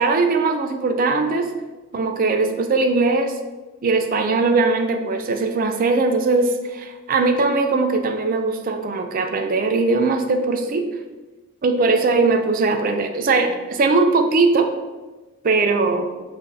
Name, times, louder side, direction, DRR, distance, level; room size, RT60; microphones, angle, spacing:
voice 1, 0.0-1.5 1.9-3.4 3.8-10.9 11.6-14.7 15.4-16.1, right 3 dB, 40° right, 6 dB, 0.3 m, -20 dB
5.6 x 2.5 x 2.6 m, 1.2 s
head